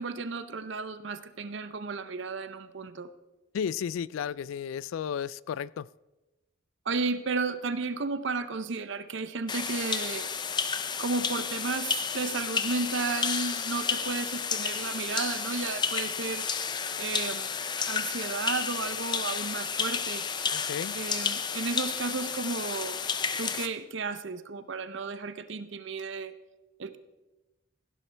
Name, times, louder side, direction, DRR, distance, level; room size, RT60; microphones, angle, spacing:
voice 1, 0.0-3.1 6.9-10.3 11.0-16.5 17.0-20.5 20.9-23.0 23.4-26.3 26.8-27.0, right 4 dB, 70° right, 0.6 m, -33 dB
voice 2, 3.5-5.9 20.5-21.0, left 8 dB, 85° left, 0.3 m, -33 dB
sound 1, 9.5-23.7, left 6 dB, 20° left, 0.5 m, -31 dB
15.5 x 11.0 x 3.3 m
head